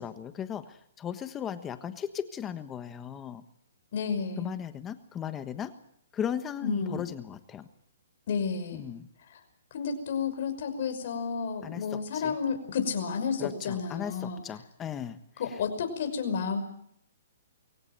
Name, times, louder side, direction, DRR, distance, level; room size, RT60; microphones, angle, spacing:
voice 1, 0.0-3.4 4.4-5.7 6.1-7.7 8.7-9.1 11.6-12.3 13.4-15.2 15.5-15.6, left 8 dB, 15° left, 11 dB, 1.3 m, -37 dB
voice 2, 3.9-4.5 6.6-7.1 8.3-8.8 9.3-9.4 9.7-14.4 15.4-16.6, left 6 dB, 50° left, 6 dB, 5.8 m, -31 dB
23.5 x 16.5 x 9.0 m, 0.70 s
hypercardioid pair, 150°, 0 cm